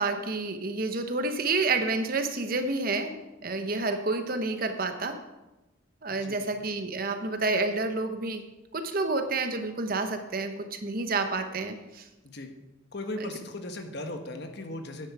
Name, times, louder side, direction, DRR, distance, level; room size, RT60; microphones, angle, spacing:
voice 1, 0.0-5.2 6.0-8.4 8.7-12.1 13.2-13.3, right 3 dB, 45° right, 7 dB, 1.0 m, -29 dB
voice 2, 12.9-15.1, left 1 dB, 55° left, 6 dB, 1.3 m, -37 dB
11.0 x 10.0 x 4.8 m, 1.0 s
head